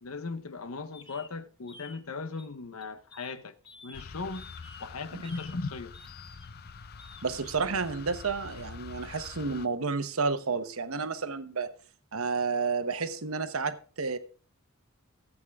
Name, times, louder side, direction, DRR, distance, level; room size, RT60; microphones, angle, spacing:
voice 1, 0.0-3.5 3.8-4.5 4.8-5.9, left 4 dB, 80° left, 0.9 m, -37 dB
sound 1, 0.9-1.3 1.7-2.0 2.4-2.5 2.8-3.3 3.6-4.0 4.3-4.9 5.2-5.5 5.9-6.7 7.0-7.2, left 3 dB, 25° left, 1.1 m, -51 dB
sound 2, 3.9-9.7, left 5 dB, 50° left, 0.5 m, -46 dB
voice 2, 7.2-11.7 12.1-14.2, right 4 dB, 80° right, 1.0 m, -31 dB
14.5 x 8.3 x 3.5 m
head